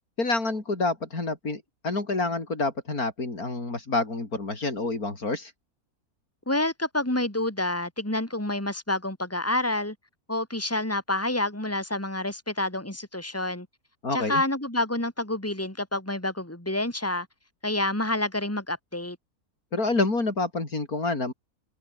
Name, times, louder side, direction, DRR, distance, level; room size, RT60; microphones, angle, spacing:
voice 1, 0.2-5.5 14.0-14.4 19.7-21.3, left 3 dB, 70° left, 4.7 m, -28 dB
voice 2, 6.5-10.0 10.3-13.7 14.1-17.3 17.6-19.2, left 1 dB, 10° left, 4.1 m, -28 dB
omnidirectional pair, 1.6 m